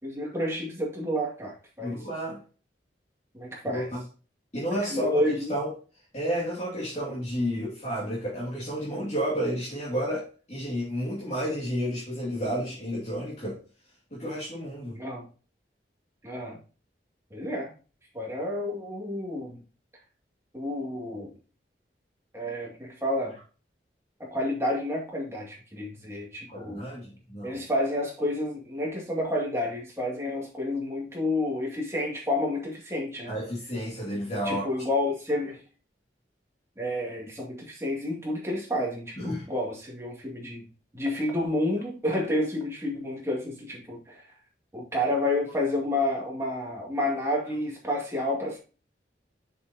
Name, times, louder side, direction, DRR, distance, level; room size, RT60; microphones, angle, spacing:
voice 1, 0.0-2.0 3.3-3.9 4.9-5.5 14.9-15.3 16.2-16.6 17.3-17.7 18.1-19.6 20.5-21.3 22.3-23.3 24.2-26.8 27.4-33.4 34.4-35.6 36.8-40.7 40.9-44.3 44.7-48.6, left 1 dB, 15° right, -3 dB, 2.2 m, -30 dB
voice 2, 1.8-2.4 3.7-4.0 4.5-5.2 5.5-5.7 6.1-13.6 14.1-15.0 26.5-27.6 33.3-34.6 39.2-39.4, equal, 40° left, -7 dB, 2.3 m, -31 dB
6.8 x 5.9 x 2.8 m, 0.36 s
head